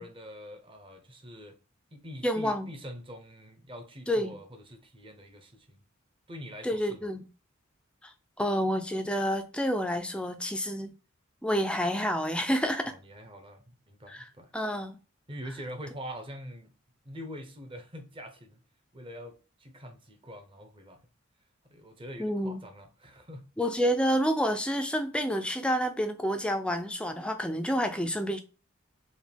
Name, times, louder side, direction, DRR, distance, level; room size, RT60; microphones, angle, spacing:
voice 1, 0.0-1.6 1.9-5.8 6.3-7.1 12.8-14.5 15.3-16.7 17.0-18.6 18.9-21.0 21.7-23.4, equal, 25° right, 0.7 m, -44 dB
voice 2, 2.2-2.7 4.1-4.4 6.6-7.2 8.0-10.9 11.4-12.9 14.1-15.0 22.2-22.6 23.6-28.4, equal, 5° left, 0.4 m, -29 dB
5.0 x 2.2 x 3.4 m
head